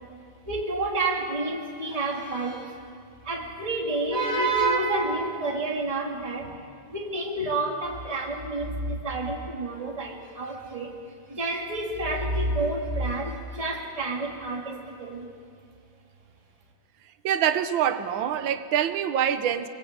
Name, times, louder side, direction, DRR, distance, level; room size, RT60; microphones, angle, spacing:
voice 1, 0.5-2.8 3.2-6.6 6.9-11.0 11.3-15.3, right 2 dB, 15° right, -1 dB, 2.5 m, -29 dB
voice 2, 17.2-19.7, right 9 dB, 70° right, 10 dB, 1.7 m, -25 dB
24.5 x 24.0 x 8.1 m, 2.2 s
omnidirectional pair, 2.3 m